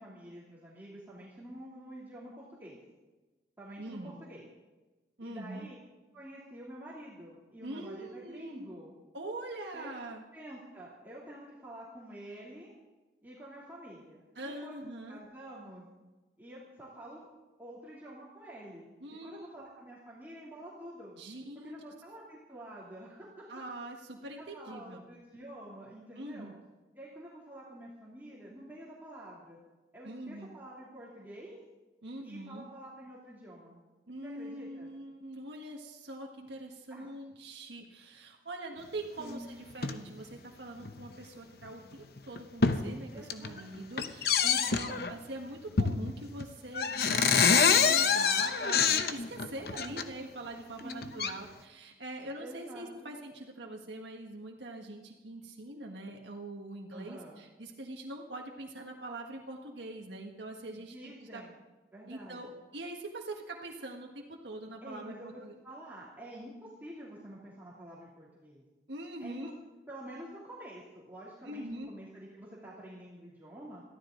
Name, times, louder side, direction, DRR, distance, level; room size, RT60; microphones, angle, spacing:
voice 1, 0.0-2.8 3.6-4.4 5.2-5.8 6.1-8.9 9.7-9.9 10.3-12.7 13.2-15.9 16.4-17.3 17.6-18.9 19.2-21.1 21.5-23.4 24.4-26.5 26.9-29.6 29.9-31.6 32.2-33.8 34.2-34.9 36.9-37.1 39.2-39.5 43.1-43.7 43.9-44.3 44.6-45.1 50.8-51.2 52.4-53.1 56.9-57.4 60.8-61.5 61.9-62.6 64.8-68.6 69.2-69.5 69.9-73.8, right 1 dB, 10° right, -8 dB, 2.9 m, -48 dB
voice 2, 3.8-4.1 5.2-5.6 7.6-8.7 9.1-10.2 14.3-15.2 19.0-19.5 21.2-21.7 23.5-25.0 26.1-26.6 30.0-30.5 32.0-32.7 34.1-61.4 62.1-65.5 68.9-69.5 71.4-71.9, right 2 dB, 85° right, 0 dB, 1.6 m, -43 dB
sound 1, 39.7-40.0 40.8-41.0 41.6-41.7 42.2-42.8 43.2-43.6 44.0-45.1 45.8-46.1 46.4-46.5 46.7-50.0 50.8-51.3, left 6 dB, 60° left, 0.9 m, -26 dB
22.5 x 14.5 x 3.9 m, 1.2 s
head